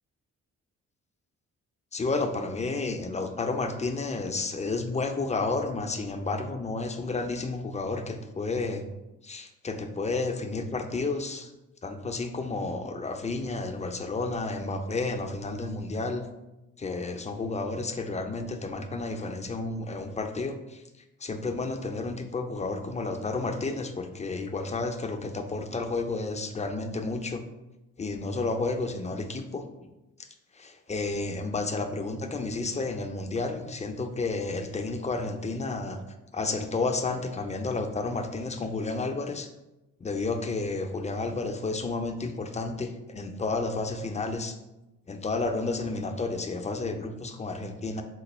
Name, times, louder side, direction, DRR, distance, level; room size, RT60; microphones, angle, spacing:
voice 1, 1.9-8.8 9.2-11.5 11.8-16.2 16.8-20.8 21.2-27.4 28.0-29.9 30.5-36.0 36.3-39.5 40.0-44.6 45.1-48.0, left 3 dB, 20° left, 5 dB, 0.4 m, -31 dB
4.2 x 2.1 x 3.1 m, 0.99 s
hypercardioid pair, 45°, 35 cm